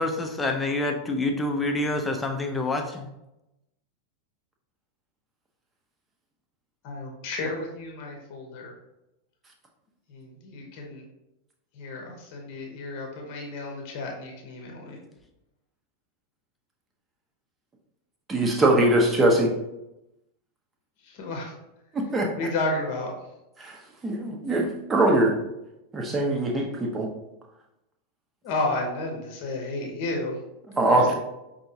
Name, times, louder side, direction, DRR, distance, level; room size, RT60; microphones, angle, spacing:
voice 1, 0.0-3.1, left 2 dB, 10° left, 3 dB, 0.6 m, -27 dB
voice 2, 6.8-8.7 10.1-11.0 11.7-15.0 21.0-21.5 22.4-23.1 28.4-30.4 30.8-31.1, left 2 dB, 45° left, 0 dB, 0.9 m, -32 dB
voice 3, 18.3-19.5 21.9-22.3 23.6-23.8 24.0-25.4 25.9-27.1 30.8-31.1, right 1 dB, 20° right, 1 dB, 0.8 m, -22 dB
5.4 x 2.7 x 2.7 m, 0.90 s
figure-of-eight pair, 90°, 0 cm